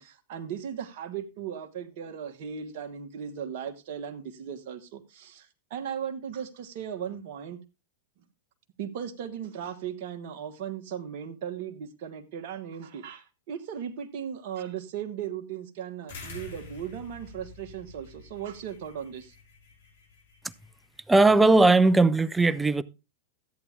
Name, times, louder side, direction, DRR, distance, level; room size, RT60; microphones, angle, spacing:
voice 1, 0.0-7.6 8.8-19.3, right 8 dB, 60° right, 1.4 m, -37 dB
sound 1, 16.1-21.0, left 3 dB, 70° left, 5.3 m, -47 dB
voice 2, 21.1-22.8, right 2 dB, 10° right, 0.6 m, -19 dB
13.5 x 8.6 x 3.5 m
hypercardioid pair, 105°, 0 cm